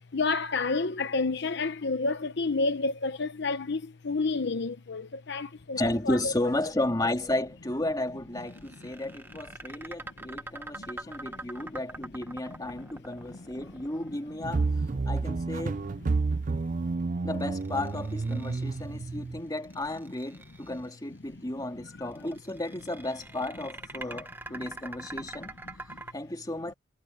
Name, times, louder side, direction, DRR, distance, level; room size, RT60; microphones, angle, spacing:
voice 1, 0.0-6.3 10.7-11.1 13.3-13.4 19.1-19.2 25.7-26.0, left 3 dB, 60° left, 0.9 m, -30 dB
voice 2, 5.8-14.7 15.0-15.8 17.2-25.5 26.1-26.7, left 1 dB, 20° left, 2.4 m, -33 dB
sound 1, 8.4-14.6 17.4-19.0 19.5-20.9 22.1-26.1, right 2 dB, 10° right, 1.3 m, -44 dB
sound 2, 14.4-19.4, right 3 dB, 45° right, 0.5 m, -30 dB
head